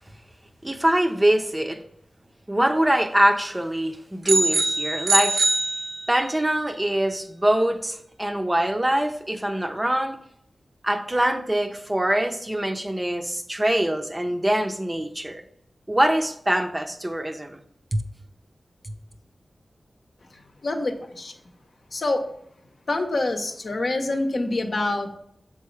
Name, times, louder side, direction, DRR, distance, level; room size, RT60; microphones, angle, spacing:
voice 1, 0.6-1.8 2.5-5.4 6.1-10.2 10.8-15.4 15.9-17.6 17.9-18.0, right 1 dB, 15° right, 0.6 m, -23 dB
sound 1, 4.3-6.4, right 2 dB, 60° right, 0.7 m, -23 dB
voice 2, 20.3-21.3 21.9-22.2 22.9-25.1, left 2 dB, 60° left, 0.8 m, -26 dB
6.8 x 4.7 x 3.2 m
wide cardioid pair, 90°, 0 cm